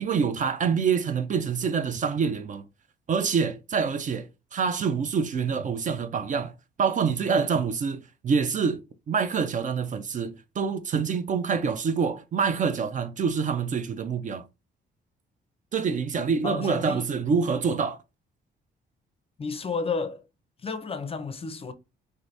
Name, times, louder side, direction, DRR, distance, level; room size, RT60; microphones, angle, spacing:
voice 1, 0.0-2.6 3.1-6.5 6.8-8.8 9.1-14.4 15.7-18.0, right 6 dB, 40° right, 0.4 m, -26 dB
voice 2, 16.4-17.0 19.4-20.2 20.6-21.7, left 4 dB, 30° left, 0.5 m, -31 dB
2.7 x 2.6 x 3.1 m
cardioid pair, 90°, 20 cm